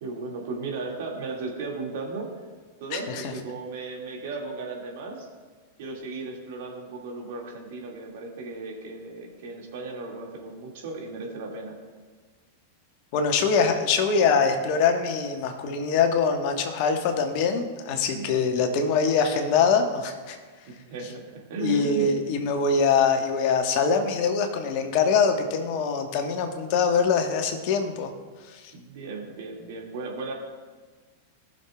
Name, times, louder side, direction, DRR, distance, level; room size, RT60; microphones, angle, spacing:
voice 1, 0.0-2.3 2.8-5.3 5.8-11.8 18.1-18.4 20.7-22.1 28.7-30.3, right 3 dB, 60° right, -1 dB, 2.1 m, -35 dB
voice 2, 2.9-3.3 13.1-20.4 21.6-28.1 28.5-28.6, left 5 dB, 55° left, 5 dB, 1.2 m, -23 dB
19.0 x 6.5 x 2.3 m, 1.4 s
hypercardioid pair, 100°, 0 cm